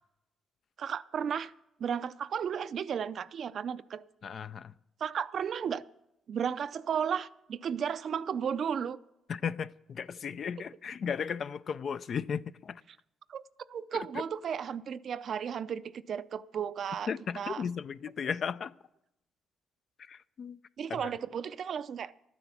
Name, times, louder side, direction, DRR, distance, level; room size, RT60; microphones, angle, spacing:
voice 1, 0.8-1.5 1.8-4.0 5.0-5.8 6.3-9.0 13.3-13.4 13.7-17.1 17.4-17.6 20.8-22.1, right 7 dB, 60° right, 0.5 m, -34 dB
voice 2, 4.2-4.7 9.3-12.8 13.9-14.1 17.1-18.7 20.0-20.6 20.9-21.1, left 7 dB, 55° left, 0.4 m, -35 dB
12.0 x 9.8 x 7.0 m
cardioid pair, 90°, 0 cm